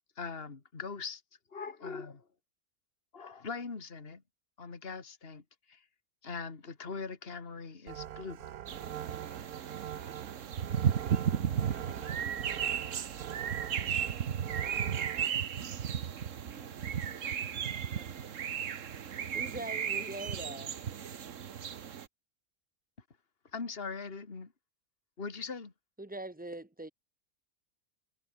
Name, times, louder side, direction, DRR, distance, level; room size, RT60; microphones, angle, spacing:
voice 1, 0.2-1.2 1.5-2.3 3.1-4.2 4.6-5.4 5.7-5.8 6.2-8.5 23.5-24.5 25.2-25.7, left 4 dB, 40° left, 2.4 m, -41 dB
sound 1, 7.9-15.3, right 10 dB, 85° right, 1.4 m, -43 dB
sound 2, 8.7-22.1, right 8 dB, 60° right, 1.4 m, -34 dB
voice 2, 11.1-13.2 16.5-18.6, left 3 dB, 65° left, 3.7 m, -59 dB
voice 3, 19.3-20.8 26.0-26.9, right 2 dB, 5° right, 1.6 m, -42 dB
omnidirectional pair, 1.5 m